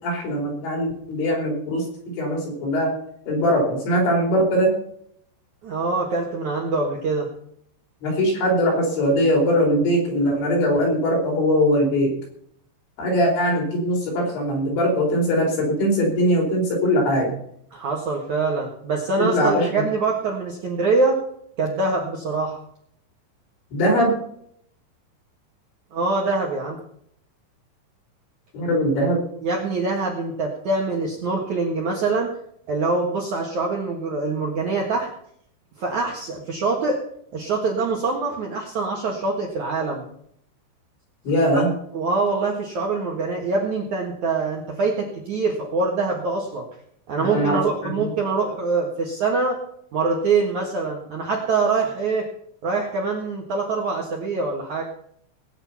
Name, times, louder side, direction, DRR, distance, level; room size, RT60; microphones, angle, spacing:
voice 1, 0.0-3.0 3.3-4.8 8.0-12.1 13.0-17.3 19.2-19.8 23.7-24.1 28.5-29.2 41.2-41.7 47.2-48.1, equal, 65° left, -1 dB, 6.8 m, -21 dB
voice 2, 5.6-7.3 17.7-21.2 21.6-22.6 25.9-26.8 29.4-32.3 32.7-35.1 35.8-37.0 37.3-40.0 41.5-41.6 41.9-46.6 47.1-49.6 49.9-52.3 52.6-54.8, right 3 dB, 55° right, 0 dB, 2.2 m, -24 dB
19.0 x 9.2 x 5.7 m, 0.68 s
omnidirectional pair, 5.6 m